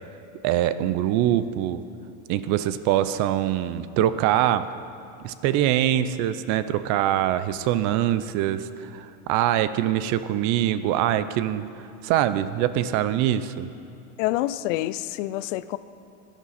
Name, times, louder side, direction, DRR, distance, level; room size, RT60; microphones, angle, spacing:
voice 1, 0.4-1.8 2.3-4.7 5.2-11.7 12.0-13.7, right 12 dB, 50° right, 14 dB, 0.5 m, -23 dB
voice 2, 14.2-15.8, left 15 dB, 90° left, 16 dB, 0.5 m, -27 dB
16.5 x 10.0 x 4.2 m, 2.7 s
cardioid pair, 155°, 36 cm